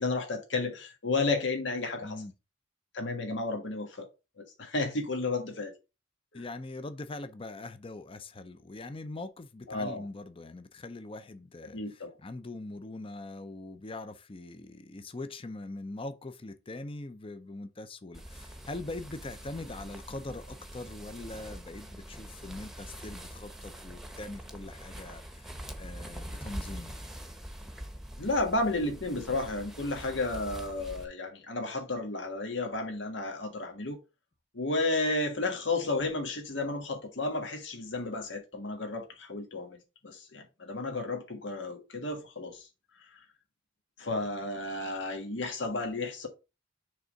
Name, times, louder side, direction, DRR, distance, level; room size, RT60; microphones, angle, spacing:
voice 1, 0.0-2.2 2.9-4.1 4.4-5.7 6.3-6.4 9.7-10.0 11.7-12.1 28.2-34.0 34.5-39.8 40.0-42.7 43.0-43.2 44.0-46.3, left 2 dB, 80° left, 1.5 m, -32 dB
voice 2, 2.0-2.3 6.3-25.5 25.8-26.9, left 2 dB, 30° left, 0.6 m, -42 dB
sound 1, 18.1-31.0, equal, ahead, 0.9 m, -44 dB
6.7 x 3.5 x 5.2 m
head